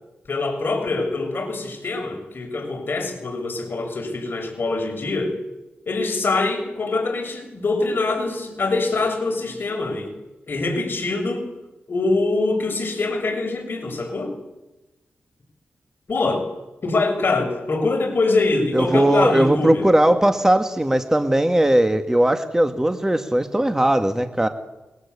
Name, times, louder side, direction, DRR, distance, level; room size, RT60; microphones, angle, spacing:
voice 1, 0.3-5.4 5.9-10.1 10.5-11.5 11.9-14.3 16.1-16.5 16.8-19.9, left 3 dB, 50° left, 4 dB, 7.1 m, -24 dB
voice 2, 18.7-24.5, right 1 dB, 10° right, 7 dB, 1.7 m, -18 dB
29.0 x 22.5 x 8.4 m, 1.0 s
wide cardioid pair, 115°, 5 cm